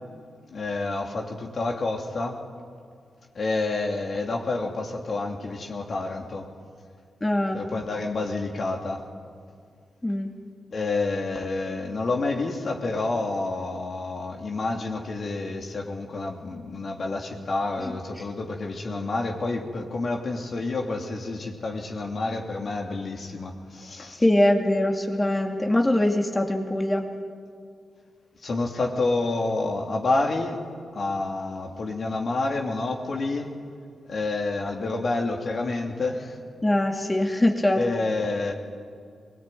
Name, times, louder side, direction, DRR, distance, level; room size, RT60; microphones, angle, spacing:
voice 1, 0.5-2.4 3.3-6.5 7.5-9.1 10.7-24.2 28.4-30.6 30.9-33.5 34.1-36.4 37.7-38.5, left 3 dB, 60° left, 2 dB, 3.1 m, -28 dB
voice 2, 7.2-7.6 10.0-10.3 24.2-27.0 36.6-37.8, left 1 dB, 20° left, 3 dB, 2.4 m, -22 dB
22.5 x 18.5 x 9.3 m, 2.2 s
supercardioid pair, 45°, 0 cm